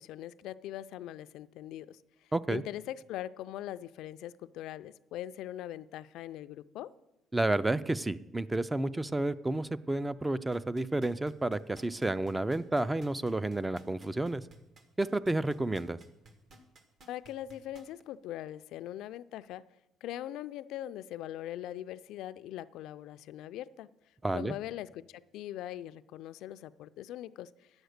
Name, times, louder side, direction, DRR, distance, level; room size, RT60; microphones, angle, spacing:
voice 1, 0.0-6.9 17.1-19.6 20.0-23.9 24.3-27.7, left 12 dB, 80° left, 13 dB, 0.3 m, -41 dB
voice 2, 2.3-2.6 7.3-14.4 15.0-16.0 24.2-24.5, right 2 dB, 10° right, 16 dB, 0.4 m, -31 dB
sound 1, 10.5-18.0 18.5-18.6, right 1 dB, 50° right, 1.4 m, -56 dB
9.7 x 8.0 x 6.5 m, 0.95 s
cardioid pair, 115°, 0 cm